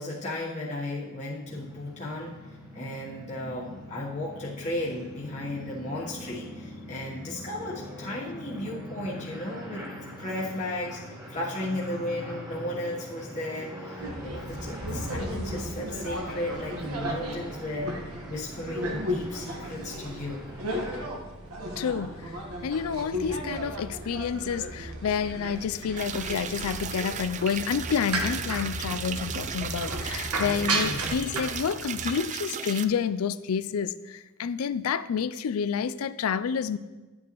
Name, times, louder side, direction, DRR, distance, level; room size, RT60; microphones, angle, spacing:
voice 1, 0.0-2.4 2.7-9.9 10.2-11.0 11.3-20.5 30.4-31.1, left 1 dB, 35° left, 1.2 m, -35 dB
sound 1, 1.4-21.1, equal, 20° right, 1.4 m, -43 dB
sound 2, 14.0-32.1, right 1 dB, 85° right, 1.4 m, -34 dB
voice 2, 21.8-22.4 22.6-36.8, left 7 dB, 80° left, 0.4 m, -29 dB
sound 3, 26.0-32.8, right 7 dB, 35° right, 0.4 m, -36 dB
11.0 x 8.4 x 3.0 m
head